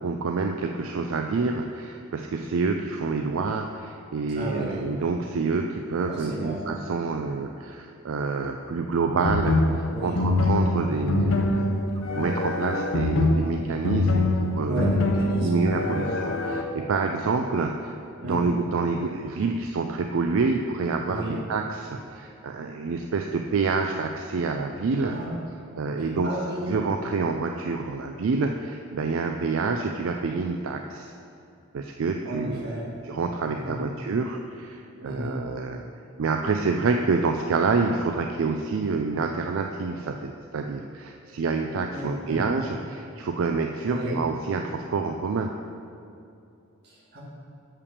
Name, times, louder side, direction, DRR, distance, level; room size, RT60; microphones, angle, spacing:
voice 1, 0.0-11.8 12.2-14.9 15.4-17.9 18.2-25.2 25.8-26.3 26.7-31.1 31.7-35.8 36.2-45.5, right 4 dB, 75° right, 4 dB, 0.4 m, -27 dB
voice 2, 4.3-4.9 6.1-6.6 9.9-10.2 14.7-16.0 18.2-18.4 21.1-21.4 25.0-25.4 26.0-26.8 32.2-32.9 33.5-33.9 35.0-35.4 41.9-42.4 43.8-44.2 46.8-47.2, right 1 dB, 50° right, -5 dB, 2.1 m, -33 dB
sound 1, 9.2-16.6, left 2 dB, 75° left, 0.6 m, -24 dB
7.0 x 5.6 x 6.6 m, 2.6 s
head